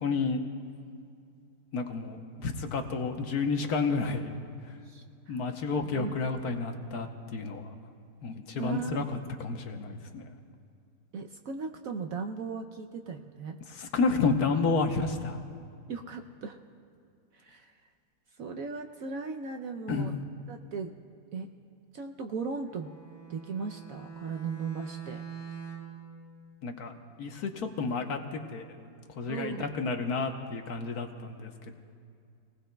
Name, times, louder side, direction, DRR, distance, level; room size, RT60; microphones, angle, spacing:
voice 1, 0.0-0.4 1.7-4.3 5.3-7.7 8.2-9.1 9.4-10.3 13.7-15.4 19.9-20.1 26.6-26.9 27.2-28.7 29.2-31.8, left 4 dB, 65° left, 5 dB, 1.3 m, -31 dB
voice 2, 4.9-5.4 5.8-6.1 8.6-9.1 11.1-13.6 15.9-16.6 17.3-17.7 18.4-20.1 20.5-20.9 21.3-21.5 21.9-22.9 23.3-25.2 29.3-29.7, right 5 dB, 65° right, 4 dB, 0.9 m, -37 dB
Bowed string instrument, 22.6-26.0, right 7 dB, 20° right, 3.9 m, -43 dB
28.0 x 19.0 x 2.3 m, 2.3 s
omnidirectional pair, 1.9 m